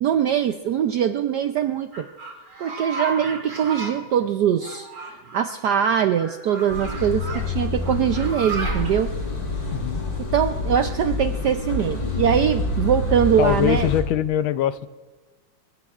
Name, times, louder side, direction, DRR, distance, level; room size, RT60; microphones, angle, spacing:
voice 1, 0.0-2.1 2.6-9.1 10.2-13.9, right 9 dB, 75° right, 7 dB, 0.9 m, -22 dB
sound 1, 1.9-3.9 4.6-5.5 6.1-7.4 7.8-8.9, right 3 dB, 40° right, 3.4 m, -33 dB
sound 2, 6.7-14.0, left 3 dB, 55° left, 3.8 m, -27 dB
voice 2, 13.4-14.9, left 11 dB, 75° left, 13 dB, 1.4 m, -22 dB
23.0 x 22.5 x 2.4 m, 1.3 s
omnidirectional pair, 2.4 m